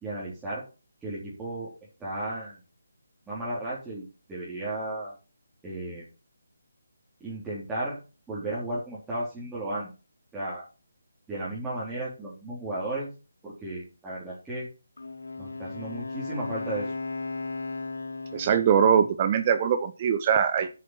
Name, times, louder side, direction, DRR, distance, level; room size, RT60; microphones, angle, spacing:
voice 1, 0.0-0.6 1.0-1.7 2.0-2.6 3.3-5.2 5.6-6.0 7.2-8.0 8.3-9.9 10.3-10.6 11.3-13.1 13.4-14.7 15.4-16.9, right 1 dB, 5° right, -9 dB, 4.2 m, -34 dB
Wind instrument woodwind instrument, 15.0-18.8, left 3 dB, 65° left, 4.2 m, -35 dB
voice 2, 18.3-20.7, right 7 dB, 25° right, 9 dB, 1.0 m, -22 dB
11.5 x 8.4 x 5.9 m, 0.32 s
figure-of-eight pair, 150°, 0 cm